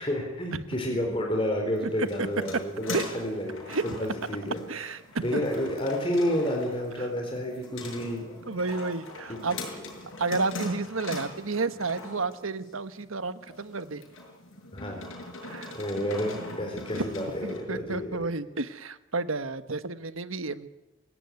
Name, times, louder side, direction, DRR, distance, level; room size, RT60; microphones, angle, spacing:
voice 1, 0.0-4.6 5.2-8.3 9.3-9.7 14.7-15.1 15.7-18.1, equal, 25° left, 1 dB, 4.1 m, -30 dB
sound 1, 1.7-17.6, left 2 dB, 70° left, 6.9 m, -42 dB
voice 2, 4.7-5.4 7.0-7.1 8.5-9.6 10.2-14.0 15.4-15.8 16.9-20.7, right 3 dB, 80° right, 12 dB, 1.3 m, -31 dB
26.0 x 17.0 x 9.5 m, 0.99 s
head